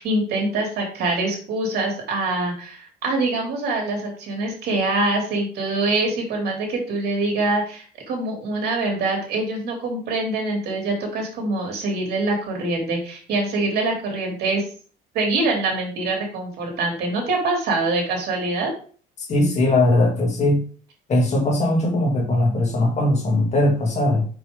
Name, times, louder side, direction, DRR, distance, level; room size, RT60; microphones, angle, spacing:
voice 1, 0.0-14.6 15.1-18.7, right 2 dB, 70° right, 1 dB, 2.7 m, -24 dB
voice 2, 19.2-20.6 21.1-24.3, left 1 dB, 40° left, 0 dB, 2.4 m, -20 dB
6.0 x 5.4 x 3.5 m, 0.42 s
cardioid pair, 110°, 17 cm